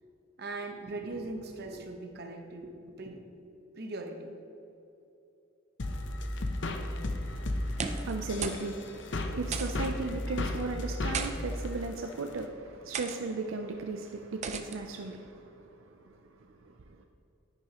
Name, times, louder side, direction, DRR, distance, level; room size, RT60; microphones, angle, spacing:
voice 1, 0.4-3.3 3.7-4.4, right 2 dB, 50° right, 4 dB, 1.0 m, -40 dB
sound 1, 5.8-12.4, left 1 dB, 65° left, 0.7 m, -34 dB
voice 2, 7.0-15.6 16.6-16.7, right 3 dB, 80° right, 4 dB, 0.5 m, -37 dB
sound 2, 7.6-8.2 8.4-8.7 9.0-9.1 9.5-9.9 10.8-11.3 12.1-12.3 12.9-13.2 14.4-14.8, right 6 dB, 35° right, 0.5 m, -36 dB
10.5 x 9.7 x 3.0 m, 2.9 s
head